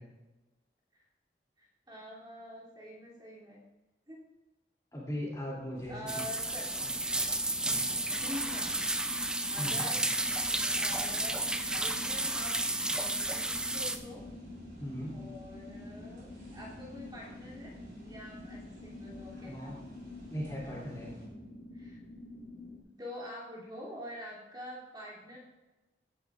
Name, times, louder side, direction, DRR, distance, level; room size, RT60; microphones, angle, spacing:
voice 1, 1.6-3.6 4.1-4.2 5.9-6.7 8.1-8.8 9.5-10.0 10.7-12.6 12.9-14.3 15.1-17.7 18.0-19.8 21.7-22.0 22.8-25.4, equal, 25° right, -5 dB, 2.9 m, -46 dB
voice 2, 4.9-6.2 9.6-9.9 14.8-15.1 18.4-18.5 19.3-19.8 20.3-21.1, equal, 20° left, -4 dB, 2.8 m, -38 dB
sound 1, 5.7-21.3, equal, 60° right, 3.9 m, -53 dB
sound 2, 6.1-14.0, right 2 dB, 5° right, 0.4 m, -32 dB
sound 3, 6.2-22.8, left 2 dB, 90° left, 1.9 m, -49 dB
15.0 x 9.8 x 2.5 m, 1.1 s
head